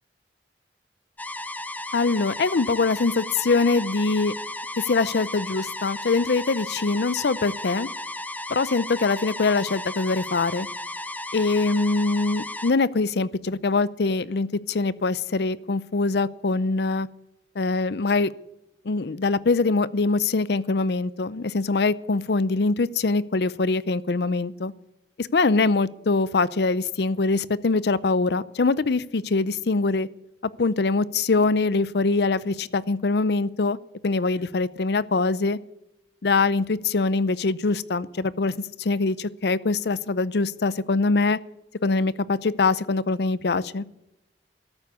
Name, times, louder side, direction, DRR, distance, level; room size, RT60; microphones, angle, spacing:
sound 1, 1.2-12.7, left 1 dB, 10° left, 0.6 m, -34 dB
voice 1, 1.9-4.3 4.8-7.9 8.5-10.7 11.3-17.1 17.6-18.3 18.9-24.7 25.2-30.1 30.6-33.8 34.0-35.6 36.2-41.4 41.8-43.8, left 3 dB, 65° left, 19 dB, 0.6 m, -23 dB
13.5 x 8.3 x 9.3 m, 0.90 s
head